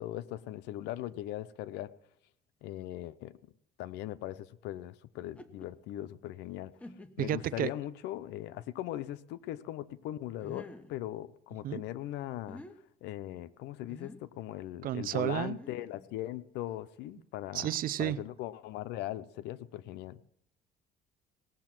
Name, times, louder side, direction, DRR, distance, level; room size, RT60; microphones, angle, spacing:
voice 1, 0.0-1.9 2.6-3.3 3.8-6.8 7.2-12.6 13.0-17.7 18.0-20.2, left 14 dB, 90° left, 14 dB, 0.7 m, -39 dB
sound 1, 5.2-5.7 6.3-6.4 6.8-7.4 8.0-8.1 10.4-11.0 12.3-12.7 13.9-14.3 15.3-16.1, left 1 dB, 10° left, 1.0 m, -49 dB
voice 2, 7.2-7.7 11.6-11.8 14.8-15.6 17.5-18.2, right 12 dB, 60° right, 15 dB, 0.6 m, -31 dB
19.0 x 7.4 x 6.0 m, 0.73 s
cardioid pair, 110°, 17 cm